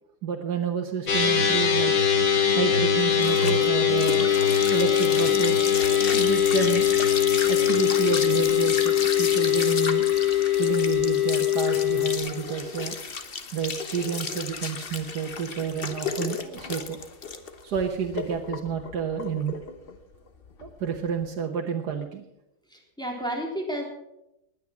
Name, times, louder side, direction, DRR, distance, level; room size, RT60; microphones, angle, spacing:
voice 1, 0.2-1.9 2.5-4.3 4.7-5.8 6.1-6.9 7.5-10.1 10.6-13.0 13.5-17.0 17.6-19.6 20.6-22.2, right 7 dB, 80° right, 2 dB, 1.7 m, -30 dB
sound 1, 1.1-12.2, left 9 dB, 65° left, 2.3 m, -22 dB
sound 2, 2.2-21.3, left 5 dB, 40° left, 1.2 m, -33 dB
voice 2, 22.7-23.8, equal, ahead, -1 dB, 3.6 m, -31 dB
19.5 x 9.6 x 6.0 m, 0.85 s
omnidirectional pair, 1.7 m